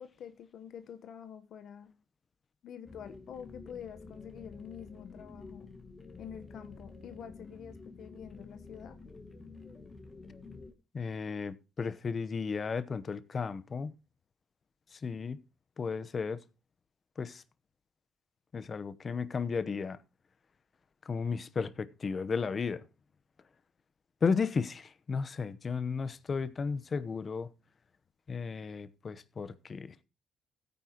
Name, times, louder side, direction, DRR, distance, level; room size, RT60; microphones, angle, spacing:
voice 1, 0.0-1.9 2.6-5.7 6.2-9.0, left 8 dB, 70° left, 1.1 m, -47 dB
sound 1, 2.8-10.7, left 3 dB, 25° left, 2.0 m, -50 dB
voice 2, 10.9-13.9 14.9-15.4 15.8-16.4 17.2-17.4 18.5-20.0 21.0-22.8 24.2-27.5 28.3-30.0, left 5 dB, 40° left, 0.9 m, -34 dB
16.0 x 9.4 x 2.9 m
cardioid pair, 90°, 0 cm